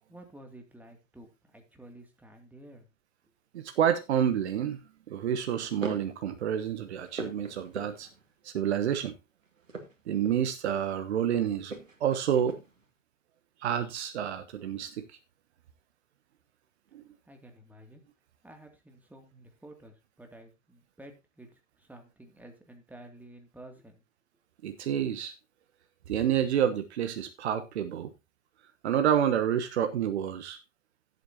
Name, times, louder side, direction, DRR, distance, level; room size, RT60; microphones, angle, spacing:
voice 1, 0.1-2.9 17.3-18.0 18.4-24.0, right 1 dB, 5° right, 2.4 m, -51 dB
voice 2, 3.5-4.8 5.1-8.1 8.4-9.1 10.1-11.7 12.0-12.6 13.6-15.2 16.9-17.0 24.6-25.3 26.1-28.1 28.8-30.6, right 9 dB, 60° right, 1.2 m, -28 dB
sound 1, 4.3-4.7 5.5-6.2 6.6-8.3 9.6-11.0 11.6-12.8, right 3 dB, 85° right, 2.1 m, -42 dB
15.5 x 8.2 x 2.8 m
figure-of-eight pair, 100°, 38 cm